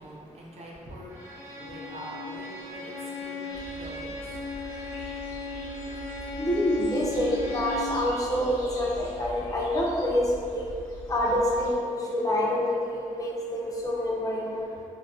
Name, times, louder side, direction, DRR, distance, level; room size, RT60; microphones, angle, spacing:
voice 1, 0.0-4.4, right 1 dB, 50° right, -3 dB, 0.5 m, -44 dB
Bowed string instrument, 1.1-8.0, left 3 dB, 25° right, 0.7 m, -37 dB
sound 1, 3.5-11.7, equal, 85° left, 0.6 m, -43 dB
voice 2, 6.4-10.7 11.1-14.7, left 1 dB, 25° left, -5 dB, 0.5 m, -27 dB
2.4 x 2.2 x 2.3 m, 2.4 s
cardioid pair, 95°, 14 cm